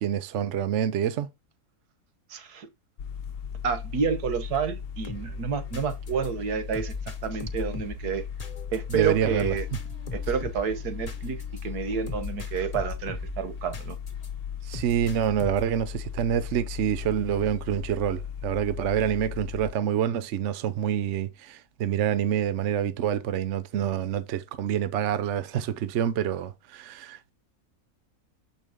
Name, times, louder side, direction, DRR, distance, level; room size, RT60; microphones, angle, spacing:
voice 1, 0.0-1.3 8.9-9.6 14.6-27.3, right 9 dB, 60° right, 0.9 m, -27 dB
voice 2, 2.3-2.7 3.6-8.2 8.7-9.7 10.1-14.0, right 6 dB, 80° right, 1.6 m, -30 dB
sound 1, 3.0-19.7, left 8 dB, 60° left, 0.9 m, -37 dB
sound 2, 5.1-14.3 14.7-15.8, left 2 dB, 30° left, 1.0 m, -40 dB
7.2 x 5.3 x 3.6 m
omnidirectional pair, 1.7 m